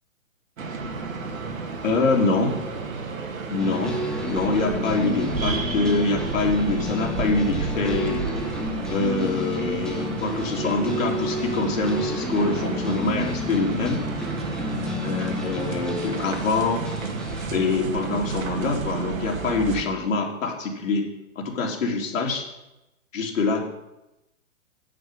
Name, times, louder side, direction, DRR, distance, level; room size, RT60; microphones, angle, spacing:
sound 1, 0.6-19.8, right 5 dB, 80° right, 2.2 m, -32 dB
voice 1, 1.8-2.5 3.5-4.0 4.3-8.2 8.9-14.0 15.0-16.8 17.5-21.0 21.4-22.4 23.1-23.7, left 3 dB, 75° left, 0 dB, 3.4 m, -25 dB
sound 2, 3.6-17.4, left 2 dB, ahead, 0.6 m, -31 dB
9.9 x 7.7 x 6.4 m, 0.93 s
hypercardioid pair, 150°, 40 cm